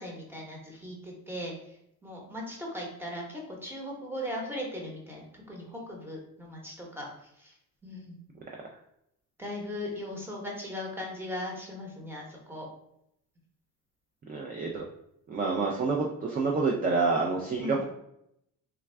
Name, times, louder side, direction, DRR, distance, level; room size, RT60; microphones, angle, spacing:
voice 1, 0.0-1.5 2.0-7.1 7.4-7.5 7.8-8.2 9.4-12.7 17.6-17.8, left 1 dB, 5° right, -1 dB, 0.9 m, -38 dB
voice 2, 14.3-14.8 15.3-17.8, right 4 dB, 25° right, -1 dB, 0.4 m, -28 dB
3.4 x 2.3 x 3.2 m, 0.78 s
cardioid pair, 120°, 35 cm